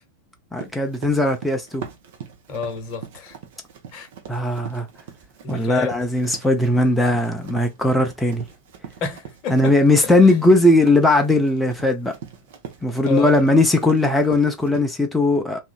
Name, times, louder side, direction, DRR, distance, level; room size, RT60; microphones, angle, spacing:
voice 1, 0.5-1.9 4.3-4.9 5.5-8.4 9.5-12.1 12.8-15.6, left 2 dB, 5° left, 0.5 m, -18 dB
Run, 0.6-14.8, right 8 dB, 55° right, 0.7 m, -41 dB
voice 2, 2.5-3.4 3.9-4.1 5.4-6.0 9.0-9.8 10.0-10.4 13.0-13.5, left 6 dB, 40° left, 0.9 m, -30 dB
2.8 x 2.5 x 2.3 m
figure-of-eight pair, 90°, 0 cm